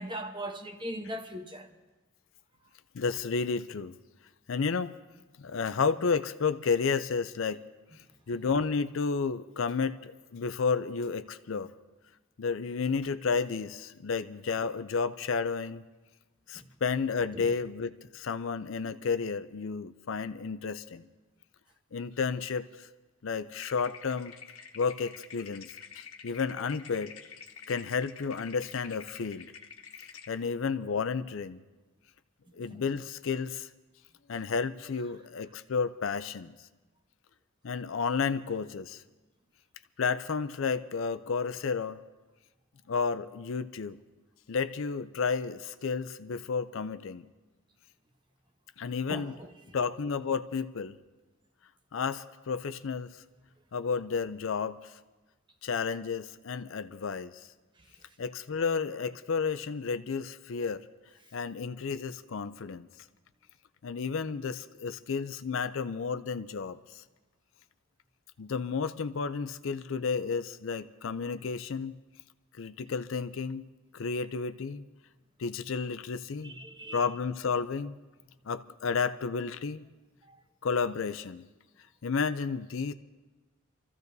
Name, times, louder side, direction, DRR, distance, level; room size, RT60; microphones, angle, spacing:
voice 1, 0.0-1.7 16.5-16.6 17.3-17.5 32.7-32.8 49.1-49.5 76.4-77.1 80.3-80.4, right 1 dB, 20° right, 1.0 m, -39 dB
voice 2, 2.9-4.0 4.5-4.9 5.4-7.6 8.3-11.7 12.4-15.8 16.5-21.1 21.9-22.9 23.2-24.3 24.7-27.2 27.7-29.5 30.3-31.6 32.5-33.7 34.3-36.5 37.6-39.0 40.0-42.0 42.9-44.0 44.5-47.3 48.8-49.4 49.7-51.0 51.9-53.2 53.7-54.9 55.6-57.5 58.2-60.9 61.3-62.9 63.8-67.0 68.4-72.0 72.6-73.6 73.9-74.9 75.4-76.5 76.9-78.0 78.5-79.8 80.6-81.4 82.0-82.9, left 5 dB, 65° left, 0.5 m, -32 dB
sound 1, 23.6-30.3, left 7 dB, 85° left, 1.4 m, -48 dB
27.0 x 15.0 x 2.7 m
head